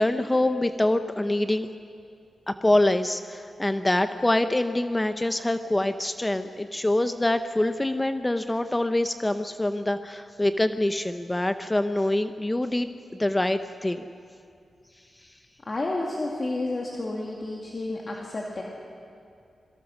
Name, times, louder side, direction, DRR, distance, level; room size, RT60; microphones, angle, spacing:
voice 1, 0.0-1.7 2.5-14.0, left 1 dB, 10° left, 9 dB, 0.6 m, -25 dB
voice 2, 15.6-18.6, left 2 dB, 30° left, -1 dB, 2.1 m, -30 dB
27.0 x 21.5 x 6.2 m, 2.4 s
wide cardioid pair, 160°, 0 cm